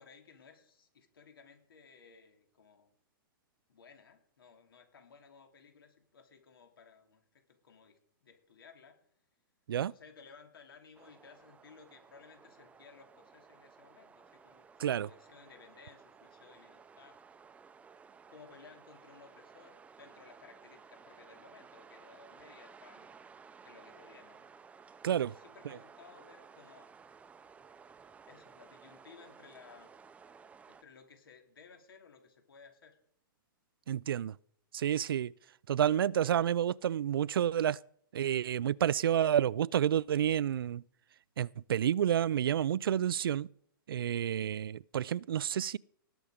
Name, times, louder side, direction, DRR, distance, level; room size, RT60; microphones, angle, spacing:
voice 1, 0.0-2.9 3.7-9.1 9.9-17.2 18.3-23.2 23.6-24.5 25.1-26.9 28.3-29.9 30.6-33.0, left 5 dB, 80° left, 3.3 m, -58 dB
sound 1, 10.9-30.8, right 5 dB, 10° right, 0.6 m, -56 dB
voice 2, 33.9-34.3 34.7-35.3 35.7-37.8 38.1-40.8 41.4-43.5 43.9-45.8, right 10 dB, 80° right, 0.4 m, -29 dB
18.5 x 7.1 x 5.1 m
hypercardioid pair, 135°, 12 cm